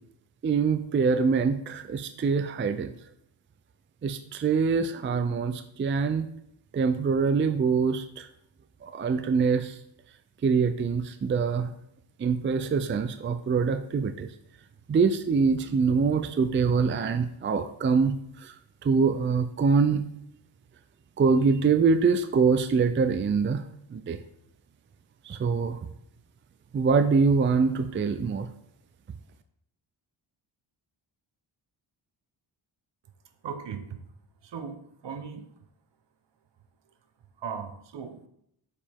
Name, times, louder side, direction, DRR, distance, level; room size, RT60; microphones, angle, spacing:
voice 1, 0.4-2.9 4.0-6.3 6.7-8.3 8.8-9.8 10.4-11.7 12.2-14.3 14.9-18.5 18.8-20.1 21.2-23.6 23.9-24.2 25.2-25.8 26.7-28.5, right 5 dB, 25° right, 9 dB, 0.4 m, -24 dB
voice 2, 33.4-34.0 34.4-35.5 37.4-38.3, right 6 dB, 60° right, 8 dB, 0.9 m, -38 dB
6.7 x 5.0 x 3.6 m, 0.75 s
cardioid pair, 80°, 48 cm